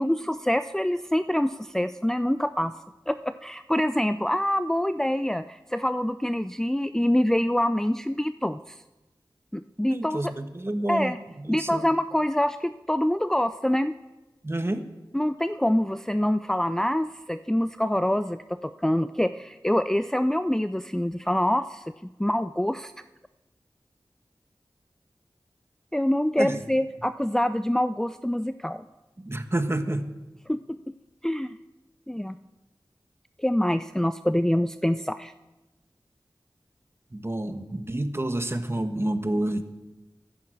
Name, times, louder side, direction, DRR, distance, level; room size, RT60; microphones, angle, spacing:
voice 1, 0.0-2.7 3.1-8.8 9.5-10.3 10.9-11.2 11.5-13.9 15.1-21.8 22.2-22.9 25.9-28.8 30.5-30.8 31.2-31.5 32.1-32.4 33.4-35.3, left 1 dB, 5° left, 11 dB, 0.4 m, -25 dB
voice 2, 9.9-11.1 11.4-11.9 14.4-14.8 26.4-26.6 29.2-30.0 37.1-39.6, right 1 dB, 30° right, 8 dB, 1.3 m, -29 dB
14.5 x 10.5 x 6.5 m, 1.1 s
wide cardioid pair, 45°, 8 cm